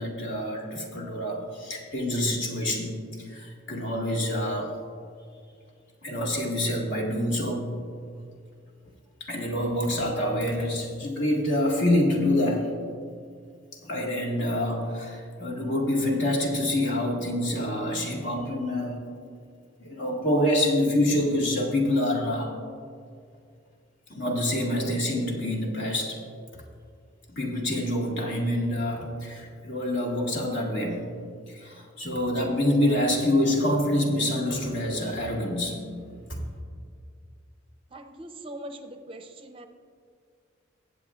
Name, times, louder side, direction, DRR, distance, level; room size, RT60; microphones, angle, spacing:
voice 1, 0.0-4.7 6.0-7.7 9.2-12.7 13.8-19.0 19.8-22.6 24.1-26.2 27.3-31.0 31.5-36.0 36.3-36.4, left 1 dB, 60° left, -1 dB, 1.8 m, -26 dB
voice 2, 37.9-39.7, right 1 dB, 25° right, 6 dB, 0.6 m, -41 dB
20.5 x 8.0 x 2.4 m, 2.2 s
head